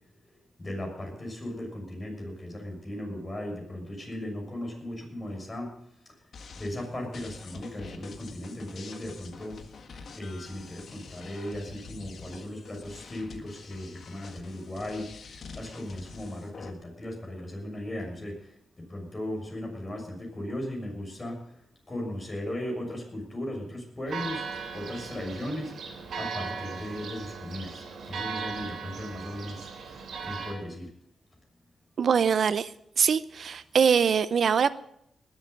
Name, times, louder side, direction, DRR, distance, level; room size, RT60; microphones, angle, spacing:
voice 1, 0.6-5.7 6.6-9.7 10.1-15.2 15.5-18.4 18.9-21.4 21.9-25.7 26.1-29.7 30.2-30.9, left 1 dB, 25° left, 1 dB, 6.4 m, -37 dB
sound 1, 6.3-16.7, left 4 dB, 65° left, 1.7 m, -47 dB
Church bell, 24.1-30.5, right 5 dB, 80° right, 3.3 m, -38 dB
voice 2, 32.0-32.7 33.0-34.7, right 7 dB, 65° right, 15 dB, 0.7 m, -23 dB
20.0 x 8.0 x 6.7 m, 0.74 s
cardioid pair, 95°, 0 cm